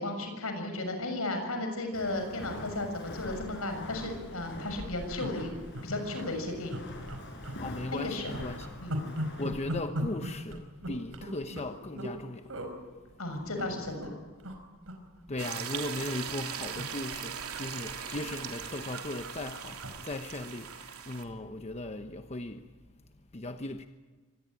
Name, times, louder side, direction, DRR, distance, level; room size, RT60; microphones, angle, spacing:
voice 1, 0.0-5.6 5.8-6.8 7.9-8.3 8.8-8.9 13.2-14.1, left 2 dB, 70° left, 6.7 m, -34 dB
Walk footsteps, 1.9-9.6, left 1 dB, 55° left, 6.9 m, -44 dB
sound 1, 3.8-3.9 4.2-4.3 4.5-4.7 5.2-5.9 6.2-6.3 6.7-7.6 7.9-12.2 12.5-12.7 13.3-14.1 14.4-14.6 14.9-16.0 16.3-20.8 21.2-21.3, equal, 65° right, 5.0 m, -39 dB
voice 2, 7.6-8.7 9.4-12.5 15.3-22.7 23.3-23.9, left 2 dB, 30° left, 1.0 m, -38 dB
sound 2, 15.4-21.2, right 8 dB, 90° right, 3.1 m, -39 dB
25.0 x 19.5 x 10.0 m
head